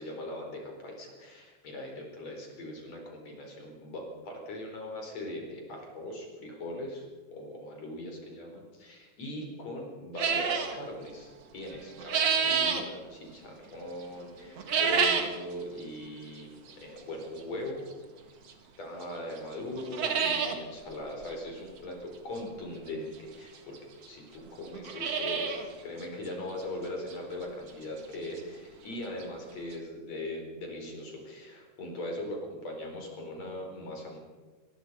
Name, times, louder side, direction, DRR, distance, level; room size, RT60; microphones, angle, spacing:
voice 1, 0.0-7.1 7.3-17.8 18.8-23.8 24.1-34.2, left 1 dB, 35° left, 1 dB, 5.2 m, -40 dB
sound 1, 10.2-10.7 11.7-12.8 14.6-15.4 15.8-15.9 16.7-16.8 18.5-18.6 19.0-19.1 19.4-19.5 19.8-20.6 20.9-21.0 21.2-21.3 22.9-23.0 23.7-23.8 24.0-24.1 24.6-25.7 26.0-26.1 26.6-26.7 27.1-27.2 28.9-29.0 29.2-29.3 29.7-29.8, right 6 dB, 55° right, 1.7 m, -28 dB
24.0 x 20.5 x 5.5 m, 1.4 s
omnidirectional pair, 5.4 m